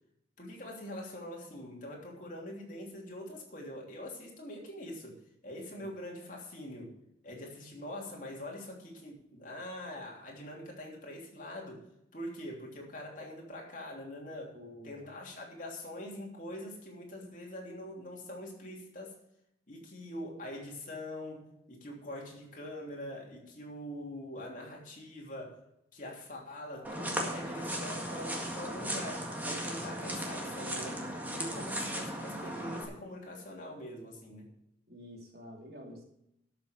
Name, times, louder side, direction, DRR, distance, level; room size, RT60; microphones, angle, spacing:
voice 1, 0.4-7.0 7.2-11.9 12.1-14.6 14.8-19.2 19.7-25.6 25.9-34.5, left 1 dB, 45° left, 3.1 m, -44 dB
voice 2, 14.5-15.1 31.4-31.8 34.9-36.0, equal, 55° right, 2.9 m, -49 dB
sound 1, 26.8-32.8, right 1 dB, 10° right, 1.8 m, -36 dB
12.5 x 6.8 x 6.4 m
head